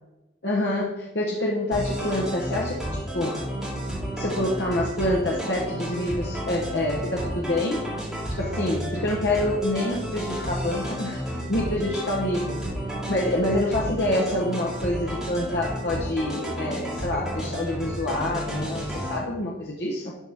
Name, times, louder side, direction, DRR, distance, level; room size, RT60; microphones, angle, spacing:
voice 1, 0.4-3.4 4.2-7.8 8.4-12.6 13.1-20.1, left 1 dB, 60° left, -4 dB, 1.1 m, -27 dB
sound 1, 1.7-19.2, equal, 5° right, 2.9 m, -32 dB
12.0 x 4.5 x 3.5 m, 0.99 s
head